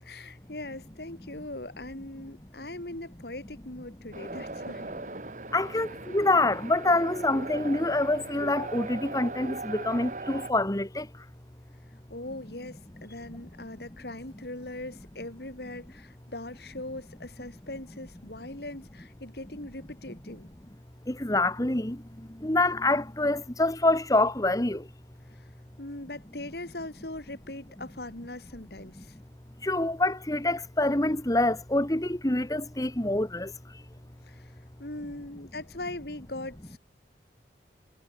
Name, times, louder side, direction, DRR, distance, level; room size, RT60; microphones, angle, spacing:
voice 1, 0.0-4.9 12.1-20.5 25.3-25.5 25.8-29.2 34.3-34.5 34.8-36.8, left 1 dB, 65° left, 3.1 m, -40 dB
sound 1, 4.1-10.5, right 2 dB, 45° right, 2.3 m, -39 dB
voice 2, 5.5-11.0 21.1-22.0 22.4-24.8 29.6-33.5, left 2 dB, 20° left, 1.5 m, -26 dB
head